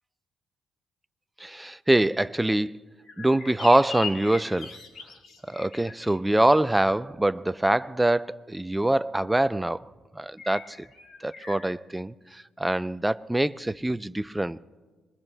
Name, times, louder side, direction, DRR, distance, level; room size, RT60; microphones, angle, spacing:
voice 1, 1.4-2.8 3.2-4.8 5.5-9.9 10.2-10.9 11.2-14.6, right 1 dB, 10° right, 0.4 m, -24 dB
sound 1, 3.0-6.2 10.4-11.6, left 5 dB, 65° left, 2.5 m, -40 dB
25.5 x 22.0 x 2.2 m
cardioid pair, 90°, 0 cm